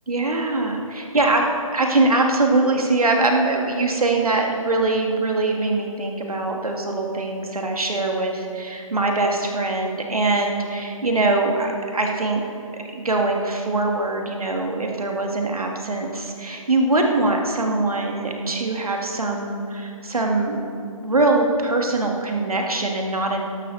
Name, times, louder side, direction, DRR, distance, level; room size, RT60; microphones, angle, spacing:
voice 1, 0.1-1.5 1.7-12.4 12.7-20.6 21.0-23.4, right 2 dB, 85° right, 2 dB, 2.3 m, -22 dB
13.5 x 11.5 x 4.2 m, 2.6 s
figure-of-eight pair, 155°, 18 cm